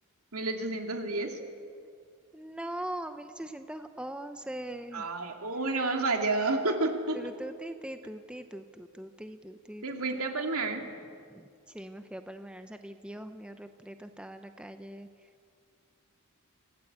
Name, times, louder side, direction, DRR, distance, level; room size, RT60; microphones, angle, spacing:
voice 1, 0.3-1.4 4.9-7.2 9.8-10.8, right 3 dB, 80° right, 4 dB, 2.5 m, -30 dB
voice 2, 2.3-5.1 7.1-10.1 11.3-15.1, right 1 dB, 5° right, 8 dB, 0.7 m, -41 dB
25.0 x 16.5 x 8.7 m, 2.3 s
head